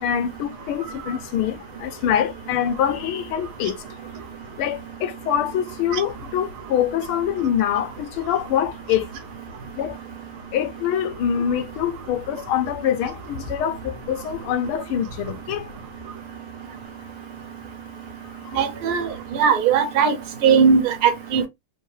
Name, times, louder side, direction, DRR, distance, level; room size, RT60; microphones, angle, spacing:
voice 1, 0.0-3.8 4.6-9.1 9.8-9.9 10.5-15.6, left 9 dB, 85° left, 1.5 m, -24 dB
voice 2, 18.6-19.1 19.4-20.1 20.4-21.5, right 6 dB, 80° right, 1.7 m, -18 dB
3.6 x 3.4 x 3.2 m
omnidirectional pair, 2.3 m